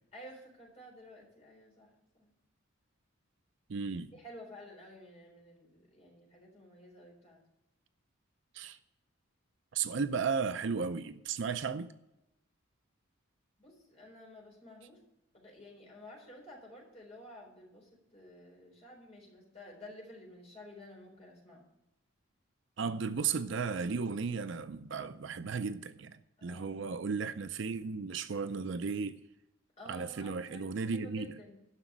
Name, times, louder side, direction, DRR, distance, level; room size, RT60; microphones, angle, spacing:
voice 1, 0.1-2.3 4.1-7.4 13.6-15.0 15.3-21.7 26.4-26.8 29.8-31.6, equal, 30° left, 4.0 m, -52 dB
voice 2, 3.7-4.1 8.5-8.8 9.7-11.9 22.8-29.2 29.9-31.3, right 5 dB, 60° right, 0.5 m, -35 dB
11.5 x 6.1 x 7.3 m
head